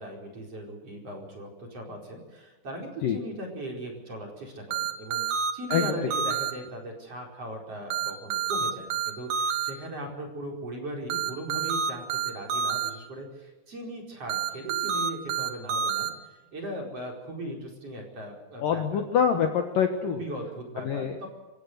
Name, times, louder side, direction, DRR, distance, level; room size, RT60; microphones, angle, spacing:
voice 1, 0.0-19.0 20.0-21.3, right 1 dB, 35° right, 0 dB, 5.3 m, -38 dB
sound 1, 4.7-6.5 7.9-9.7 11.1-12.9 14.3-16.1, right 7 dB, 65° right, 2.0 m, -28 dB
voice 2, 18.6-20.2 20.8-21.2, left 8 dB, 65° left, 5 dB, 2.4 m, -25 dB
26.5 x 15.5 x 6.7 m, 1.1 s
omnidirectional pair, 5.2 m